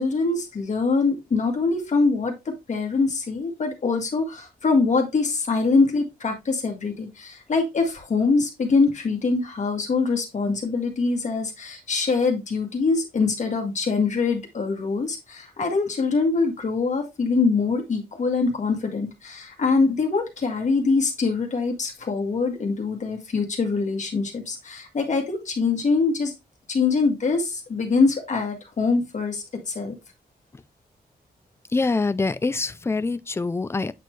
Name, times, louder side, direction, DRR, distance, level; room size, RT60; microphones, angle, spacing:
voice 1, 0.0-2.3 2.7-26.3 26.7-30.0, left 4 dB, 45° left, 1.7 m, -23 dB
voice 2, 31.7-33.9, left 3 dB, 15° left, 0.4 m, -25 dB
8.3 x 4.3 x 3.2 m
wide cardioid pair, 135°, 17 cm